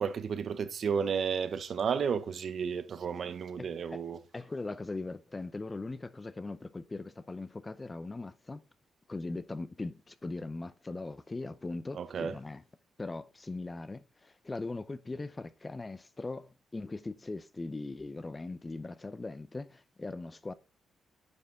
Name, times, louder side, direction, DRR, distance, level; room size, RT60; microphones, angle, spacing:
voice 1, 0.0-4.2 11.9-12.4, right 6 dB, 55° right, 0.7 m, -32 dB
voice 2, 3.6-4.0 4.3-8.6 9.1-12.6 13.0-20.5, left 3 dB, 20° left, 0.5 m, -40 dB
9.5 x 5.0 x 3.6 m
cardioid pair, 95°, 0 cm